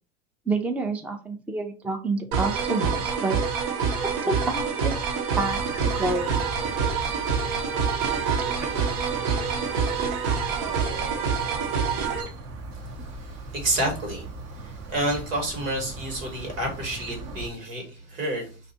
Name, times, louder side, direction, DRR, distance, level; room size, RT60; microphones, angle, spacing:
voice 1, 0.5-3.4 4.0-5.0 5.4-6.5 8.4-8.7, right 3 dB, 5° right, 5 dB, 0.4 m, -29 dB
sound 1, 2.3-12.2, right 6 dB, 65° right, 1.0 m, -26 dB
Chirp tweet, 5.3-17.5, right 3 dB, 40° right, 0.7 m, -39 dB
voice 2, 13.3-14.2 14.6-18.5, right 1 dB, 90° right, 1 dB, 1.6 m, -29 dB
2.7 x 2.4 x 4.0 m, 0.36 s
hypercardioid pair, 90°, 38 cm